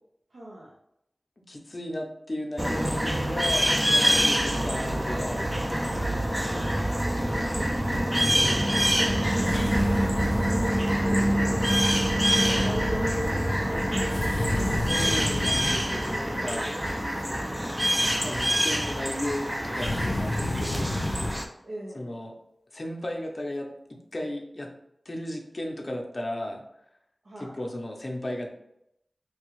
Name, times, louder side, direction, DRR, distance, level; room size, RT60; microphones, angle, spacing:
voice 1, 0.3-0.8 4.1-4.4 6.5-9.9 11.0-14.2 21.6-22.1 27.2-27.6, right 1 dB, 80° right, -5 dB, 0.6 m, -43 dB
voice 2, 1.5-5.6 14.8-16.7 17.2-17.6 18.2-21.0 21.9-22.3 22.7-24.7 25.1-26.6 27.4-28.5, left 1 dB, 45° left, 1 dB, 0.6 m, -35 dB
sound 1, 2.6-21.4, equal, 10° right, 0.4 m, -25 dB
sound 2, 9.4-10.9 14.1-15.9 19.7-21.4, left 2 dB, 85° left, 0.3 m, -31 dB
3.3 x 2.3 x 3.0 m, 0.79 s
wide cardioid pair, 80°, 0 cm